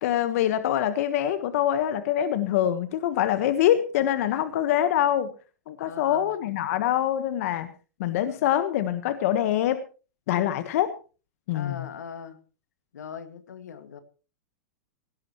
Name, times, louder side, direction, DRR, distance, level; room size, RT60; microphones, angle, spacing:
voice 1, 0.0-5.3 5.7-7.7 8.0-9.8 10.3-10.9 11.5-11.8, left 11 dB, 60° left, 10 dB, 1.4 m, -24 dB
voice 2, 5.8-6.4 8.0-8.5 10.3-10.7 11.5-12.4 12.9-14.0, left 7 dB, 90° left, 10 dB, 2.0 m, -41 dB
17.0 x 17.0 x 3.1 m, 0.35 s
hypercardioid pair, 125°, 9 cm